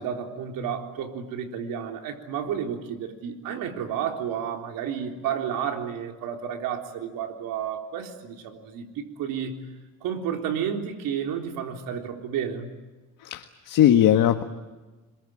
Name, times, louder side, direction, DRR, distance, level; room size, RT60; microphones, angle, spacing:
voice 1, 0.0-9.5 10.0-12.7, right 8 dB, 80° right, 3 dB, 3.9 m, -31 dB
voice 2, 13.2-14.4, left 11 dB, 70° left, 5 dB, 1.7 m, -19 dB
28.0 x 22.0 x 9.2 m, 1.2 s
cardioid pair, 120°, 33 cm